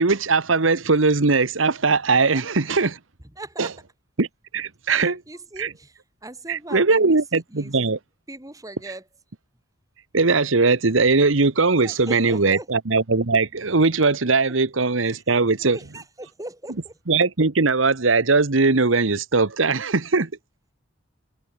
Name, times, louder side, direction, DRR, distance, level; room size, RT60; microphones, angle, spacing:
voice 1, 0.0-3.0 3.6-3.7 4.2-4.3 4.5-5.2 5.6-5.7 6.5-8.0 10.1-15.8 17.1-20.3, right 3 dB, 80° right, 1.2 m, -20 dB
voice 2, 3.4-3.8 4.9-7.7 8.3-9.0 11.8-12.7 15.1-15.2 15.6-16.9, right 1 dB, 15° right, 2.3 m, -39 dB
head